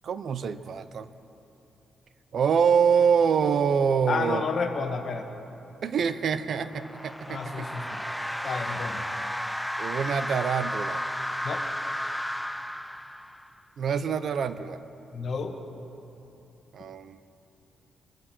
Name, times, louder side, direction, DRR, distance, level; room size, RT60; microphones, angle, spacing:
voice 1, 0.0-1.1 2.3-4.4 5.8-7.6 9.8-11.0 13.8-14.8 16.7-17.2, right 6 dB, 55° right, 13 dB, 0.6 m, -25 dB
voice 2, 4.1-5.3 7.3-8.0 8.4-9.0 11.4-11.6 15.1-15.5, left 5 dB, 50° left, 5 dB, 1.4 m, -31 dB
sound 1, 6.5-13.6, equal, ahead, 0.3 m, -33 dB
23.5 x 13.5 x 4.4 m, 2.8 s
cardioid pair, 130°, 0 cm